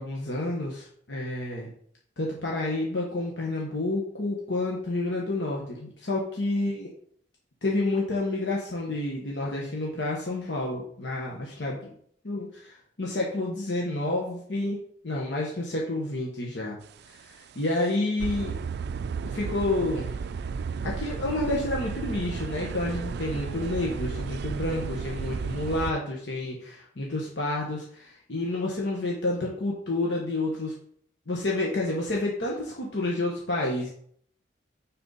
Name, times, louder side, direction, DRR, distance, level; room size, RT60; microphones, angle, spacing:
voice 1, 0.0-1.7 2.2-6.9 7.6-11.9 12.2-16.8 17.0-18.5 19.3-20.1 20.8-30.7 31.3-33.9, left 2 dB, 75° left, -2 dB, 1.3 m, -29 dB
sound 1, 17.0-17.3 17.7-17.8 18.2-25.9, right 5 dB, 60° right, 0.3 m, -33 dB
9.4 x 4.4 x 4.0 m, 0.63 s
head